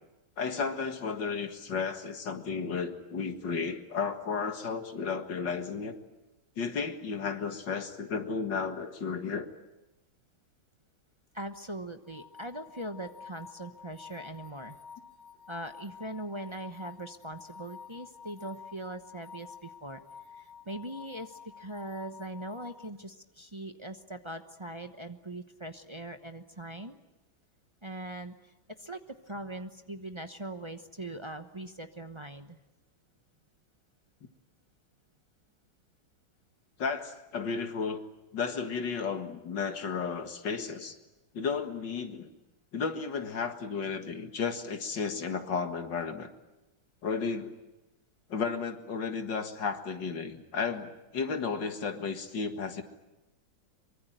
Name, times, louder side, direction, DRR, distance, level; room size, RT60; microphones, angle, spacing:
voice 1, 0.4-6.0 6.6-9.5 36.8-38.0 38.3-41.0 41.3-42.3 42.7-46.3 47.0-47.5 48.3-52.8, left 5 dB, 65° left, 7 dB, 2.4 m, -33 dB
voice 2, 11.3-14.8 15.5-20.0 20.4-27.0 27.8-28.5 28.8-32.6, right 1 dB, 25° right, 6 dB, 0.7 m, -41 dB
sound 1, 12.1-22.9, left 6 dB, 40° left, 1.5 m, -50 dB
24.0 x 23.5 x 9.0 m, 1.0 s
omnidirectional pair, 2.1 m